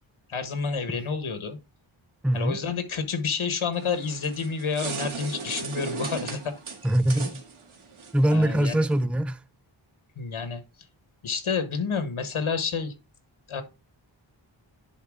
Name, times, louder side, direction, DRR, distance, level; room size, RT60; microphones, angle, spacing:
voice 1, 0.3-1.6 2.3-6.6 8.3-8.8 10.2-10.6 11.2-12.9 13.5-13.6, left 5 dB, 80° left, 1.4 m, -29 dB
voice 2, 2.2-2.6 6.8-7.4 8.1-9.4, right 1 dB, 5° right, 0.4 m, -23 dB
sound 1, 3.7-9.0, right 4 dB, 85° right, 1.8 m, -37 dB
10.0 x 4.0 x 3.7 m
wide cardioid pair, 70°, 48 cm